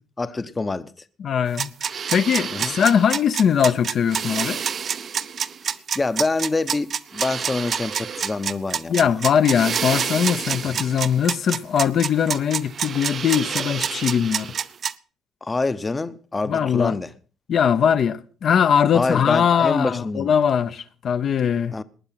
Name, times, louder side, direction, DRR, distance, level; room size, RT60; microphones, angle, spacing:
voice 1, 0.2-0.9 2.5-2.7 5.7-9.1 10.7-10.8 15.4-17.1 18.9-20.4 21.7-21.8, left 3 dB, 20° left, 0.8 m, -26 dB
voice 2, 1.2-4.6 8.9-14.5 16.5-17.0 17.5-21.8, left 8 dB, 50° left, 0.8 m, -21 dB
sound 1, 1.6-14.9, right 7 dB, 45° right, 0.7 m, -27 dB
19.5 x 10.0 x 5.9 m
cardioid pair, 120°, 0 cm